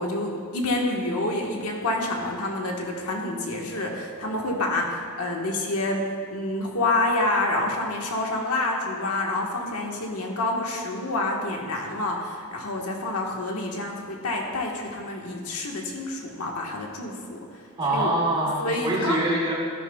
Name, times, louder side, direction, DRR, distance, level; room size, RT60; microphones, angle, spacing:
voice 1, 0.0-17.4 17.9-18.2 18.6-19.2, left 2 dB, 80° left, 0 dB, 1.4 m, -28 dB
voice 2, 17.8-19.5, right 1 dB, 25° right, -5 dB, 2.3 m, -24 dB
12.5 x 10.5 x 2.3 m, 2.2 s
head